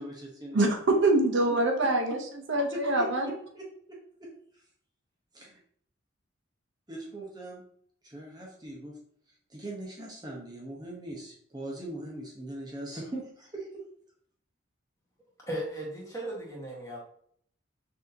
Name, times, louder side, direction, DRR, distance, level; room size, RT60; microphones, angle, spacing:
voice 1, 0.0-0.6 2.7-3.7 4.2-4.3 5.3-5.6 6.9-7.6 8.0-9.0 9.5-13.8, right 1 dB, 20° right, -2 dB, 0.8 m, -40 dB
voice 2, 0.5-2.2 2.5-3.3, right 2 dB, 65° right, 4 dB, 0.7 m, -24 dB
voice 3, 15.5-17.0, right 1 dB, 15° left, -4 dB, 1.3 m, -36 dB
6.2 x 2.7 x 2.7 m, 0.63 s
head